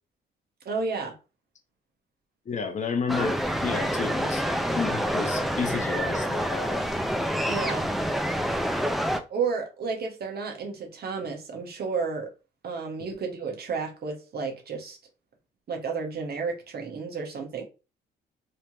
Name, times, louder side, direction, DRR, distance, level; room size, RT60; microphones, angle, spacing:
voice 1, 0.6-1.1 7.5-7.9 9.3-12.3 12.6-15.0 15.7-17.6, right 5 dB, 50° right, 1.2 m, -32 dB
voice 2, 2.5-4.4 4.7-6.8, left 5 dB, 35° left, 0.8 m, -31 dB
sound 1, 3.1-9.2, equal, ahead, 0.4 m, -27 dB
3.3 x 2.9 x 2.9 m
cardioid pair, 90°, 20 cm